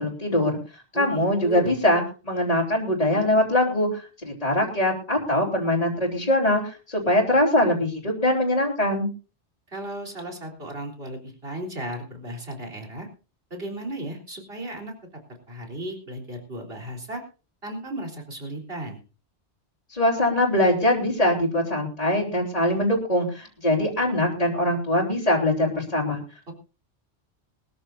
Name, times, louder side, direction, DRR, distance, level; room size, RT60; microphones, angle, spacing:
voice 1, 0.0-9.1 19.9-26.2, left 1 dB, 35° left, -5 dB, 3.5 m, -23 dB
voice 2, 0.9-1.7 9.7-13.1 13.5-14.9 15.5-17.2 17.6-19.0 26.5-26.6, right 1 dB, 60° right, 1 dB, 4.0 m, -35 dB
22.5 x 14.0 x 2.6 m, 0.34 s
omnidirectional pair, 1.2 m